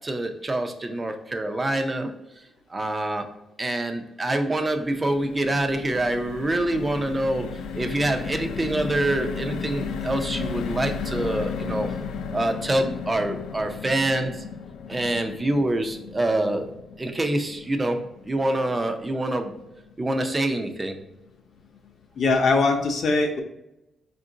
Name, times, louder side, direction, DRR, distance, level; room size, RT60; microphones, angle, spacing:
voice 1, 0.0-2.1 2.7-3.3 3.6-11.9 12.3-14.4 14.9-16.7 17.0-18.0 18.3-19.6 20.0-21.0, right 1 dB, 15° right, 6 dB, 0.4 m, -26 dB
sound 1, 4.5-20.9 21.3-21.4 21.6-21.9, left 6 dB, 75° left, 0.4 m, -35 dB
voice 2, 22.2-23.4, left 3 dB, 50° left, 3 dB, 0.7 m, -21 dB
5.2 x 2.5 x 3.7 m, 0.90 s
wide cardioid pair, 175°, 0 cm